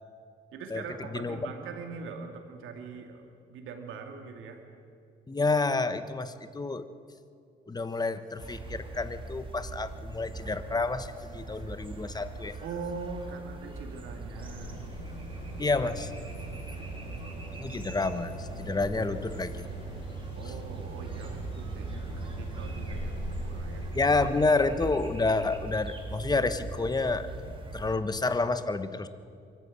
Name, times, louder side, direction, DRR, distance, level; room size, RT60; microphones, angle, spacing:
voice 1, 0.5-4.6 12.6-14.8 16.4-17.6 20.3-23.9, right 5 dB, 85° right, 4 dB, 2.8 m, -42 dB
voice 2, 5.3-6.9 7.7-12.6 15.6-16.1 17.6-19.7 23.9-27.3 27.7-29.1, left 3 dB, 20° left, 12 dB, 1.2 m, -29 dB
sound 1, 8.4-28.0, right 3 dB, 25° right, 3.7 m, -41 dB
sound 2, 14.4-23.9, right 2 dB, 65° left, 6.1 m, -40 dB
23.5 x 14.0 x 8.7 m, 2.3 s
cardioid pair, 90°, 20 cm